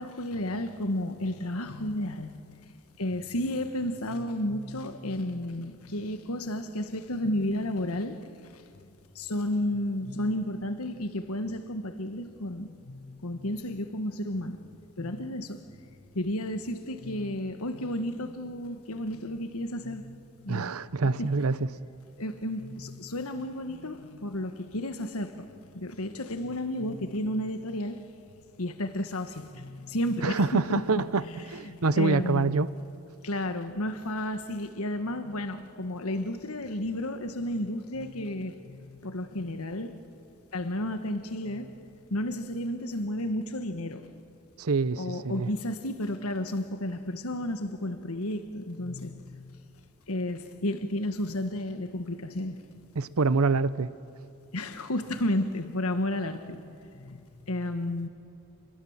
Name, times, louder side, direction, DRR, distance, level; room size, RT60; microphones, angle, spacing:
voice 1, 0.0-8.3 9.1-14.6 15.0-15.7 16.1-20.7 21.2-21.3 22.2-28.0 28.6-30.6 31.0-31.1 31.6-32.6 33.2-40.0 40.5-41.8 42.1-44.0 45.0-49.6 50.1-52.6 54.5-58.1, left 1 dB, 80° left, 8 dB, 1.5 m, -32 dB
voice 2, 20.5-21.7 30.2-31.2 31.5-32.7 44.6-45.5 53.0-53.9, right 4 dB, 75° right, 16 dB, 0.7 m, -26 dB
29.0 x 21.5 x 7.4 m, 2.8 s
head